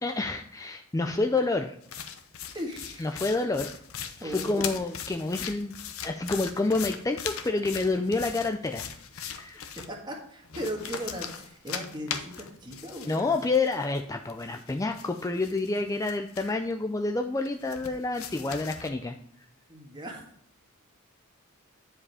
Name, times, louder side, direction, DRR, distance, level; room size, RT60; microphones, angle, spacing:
voice 1, 0.0-1.7 3.0-3.7 4.2-5.7 6.0-8.8 9.1-9.8 13.1-19.1, left 3 dB, 15° left, 4 dB, 0.4 m, -28 dB
sound 1, 1.8-9.9 10.4-14.0 14.3-16.7 17.4-18.9, left 8 dB, 65° left, 0.8 m, -39 dB
voice 2, 2.5-3.1 4.2-4.8 9.9-13.4 19.7-20.2, equal, 20° right, 1 dB, 1.7 m, -37 dB
10.0 x 4.9 x 4.8 m, 0.68 s
head